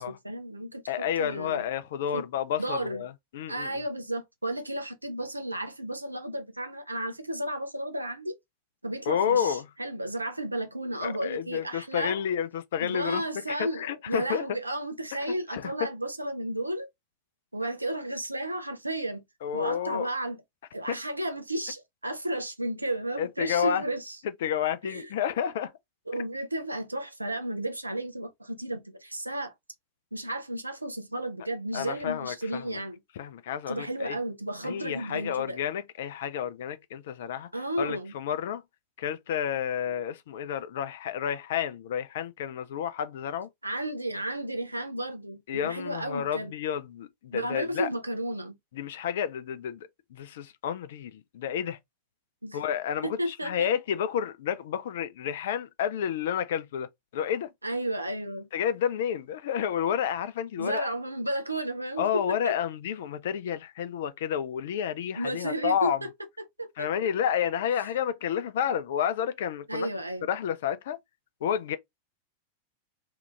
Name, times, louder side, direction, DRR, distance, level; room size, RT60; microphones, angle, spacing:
voice 1, 0.0-1.6 2.1-2.2 2.6-3.0 3.5-8.4 8.8-12.2 12.8-16.9 17.5-19.2 19.5-20.4 20.7-24.2 24.8-25.1 26.1-29.5 30.1-33.0 33.7-35.6 37.5-38.1 43.6-46.5 47.3-48.6 52.4-52.6 53.0-53.7 57.6-58.5 60.6-62.5 65.2-66.1 66.6-67.1 69.7-70.3, right 1 dB, 85° right, 0.5 m, -33 dB
voice 2, 0.9-3.8 9.1-9.7 11.0-14.4 15.5-15.7 19.4-20.1 20.9-21.0 23.2-23.8 24.2-25.7 31.7-32.7 33.2-34.2 34.6-37.5 37.8-38.6 39.0-43.5 45.5-47.9 48.7-51.8 52.5-56.9 57.1-57.5 58.5-60.9 62.0-66.0 66.8-69.9 70.3-71.0 71.4-71.8, left 9 dB, 55° left, 0.4 m, -30 dB
2.8 x 2.4 x 3.0 m
figure-of-eight pair, 90°, 0 cm